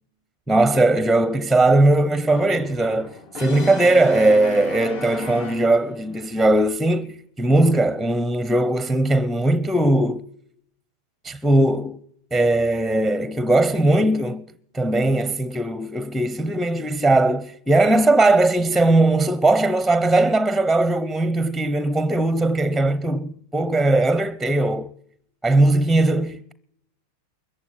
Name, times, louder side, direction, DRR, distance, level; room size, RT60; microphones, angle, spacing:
voice 1, 0.5-10.2 11.2-12.0 12.3-14.4 14.7-24.9 25.4-26.5, right 2 dB, ahead, 0.8 m, -19 dB
Brass instrument, 2.3-6.1, left 4 dB, 65° left, 7.5 m, -35 dB
22.0 x 14.5 x 9.7 m
hypercardioid pair, 110°, 0 cm